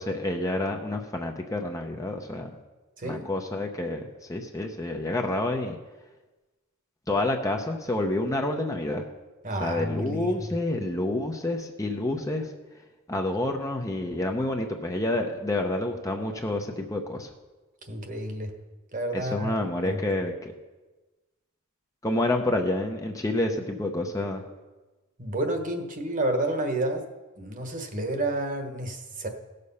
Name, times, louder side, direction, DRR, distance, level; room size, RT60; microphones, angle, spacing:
voice 1, 0.0-2.5 3.0-4.0 4.3-5.8 7.1-9.0 9.6-12.5 13.1-17.3 19.1-20.5 22.0-24.4, left 1 dB, 15° left, 3 dB, 0.7 m, -28 dB
voice 2, 9.4-10.5 17.9-18.5 18.9-19.5 19.8-20.0 25.2-27.1 27.4-29.3, right 1 dB, 35° right, 5 dB, 1.3 m, -30 dB
16.5 x 6.7 x 5.5 m, 1.2 s
head